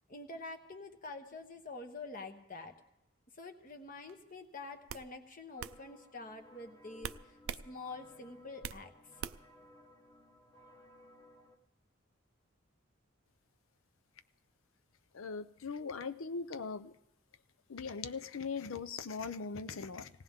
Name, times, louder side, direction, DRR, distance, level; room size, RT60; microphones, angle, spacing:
voice 1, 0.1-2.7 3.3-9.3, left 3 dB, 45° left, 5 dB, 1.2 m, -47 dB
sound 1, 4.1-4.3 4.9-5.1 5.6-5.8 7.0-7.7 8.0-8.8 9.2-9.6, right 8 dB, 85° right, 0.4 m, -42 dB
sound 2, 5.6-11.6, left 1 dB, 20° left, 1.4 m, -60 dB
voice 2, 15.1-16.9 17.7-20.1, left 5 dB, 85° left, 12 dB, 0.6 m, -40 dB
18.5 x 18.0 x 3.6 m, 0.84 s
head